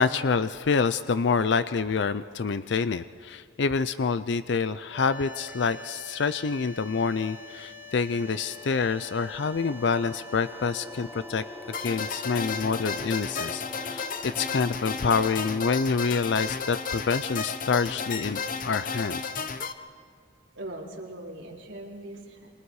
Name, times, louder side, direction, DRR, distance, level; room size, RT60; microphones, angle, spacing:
voice 1, 0.0-11.4 11.8-19.2, left 5 dB, 60° left, 13 dB, 0.5 m, -27 dB
sound 1, 4.9-16.0, left 4 dB, 15° right, 4.3 m, -46 dB
sound 2, 8.0-16.3, equal, 5° left, 1.3 m, -47 dB
sound 3, 11.7-19.7, left 5 dB, 45° left, 0.9 m, -33 dB
voice 2, 20.5-22.5, right 1 dB, 75° right, -3 dB, 4.3 m, -40 dB
28.0 x 26.0 x 4.8 m, 2.2 s
head